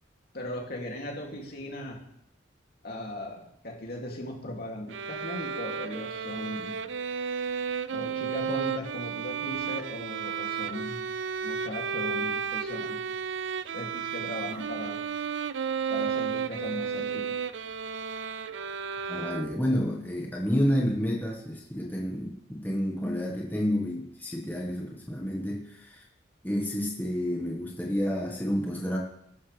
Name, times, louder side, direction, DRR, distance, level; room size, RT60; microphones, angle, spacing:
voice 1, 0.3-2.0 2.8-6.8 7.9-11.0 11.4-13.0 13.7-15.0 15.9-17.4, left 1 dB, 55° left, -1 dB, 2.8 m, -38 dB
sound 1, 4.9-19.9, right 6 dB, 75° right, 0.5 m, -33 dB
voice 2, 19.1-26.0 26.4-29.0, equal, 10° left, -3 dB, 1.6 m, -30 dB
16.5 x 12.5 x 3.5 m, 0.77 s
head